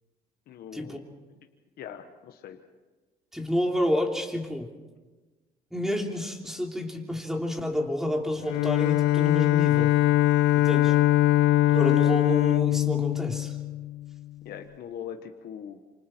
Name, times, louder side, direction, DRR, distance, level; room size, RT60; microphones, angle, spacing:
voice 1, 0.5-1.0 1.8-2.6 14.4-15.8, left 8 dB, 65° left, 5 dB, 1.4 m, -41 dB
voice 2, 3.3-4.7 5.7-9.9 10.5-11.0 11.7-13.6, left 1 dB, ahead, 1 dB, 3.2 m, -29 dB
Bowed string instrument, 8.4-14.1, left 15 dB, 85° left, 0.7 m, -22 dB
27.0 x 26.0 x 4.5 m, 1.3 s
cardioid pair, 110°, 17 cm